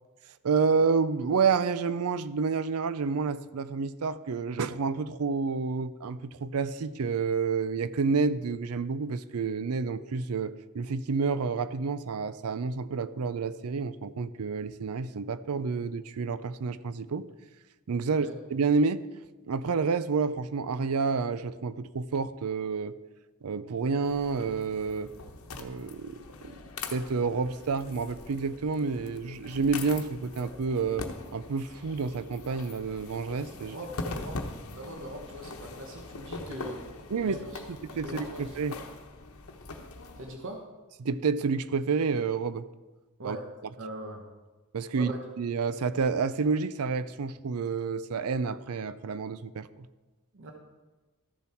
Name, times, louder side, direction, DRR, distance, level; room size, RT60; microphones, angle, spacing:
voice 1, 0.4-17.2 17.9-19.0 19.5-22.9 23.4-25.1 25.6-26.2 26.4-26.5 26.9-31.0 31.3-33.8 37.1-37.4 37.9-38.7 41.0-42.7 43.2-43.4 44.7-49.9, right 5 dB, 80° right, 15 dB, 0.5 m, -29 dB
sound 1, 24.0-40.4, left 3 dB, 70° left, 1.0 m, -42 dB
voice 2, 33.6-36.8 37.2-37.6 37.9-38.7 40.2-40.6 43.2-43.4 43.7-44.2 44.9-45.2 50.3-50.5, right 1 dB, 60° right, 2 dB, 1.2 m, -41 dB
13.5 x 7.1 x 4.4 m, 1.2 s
head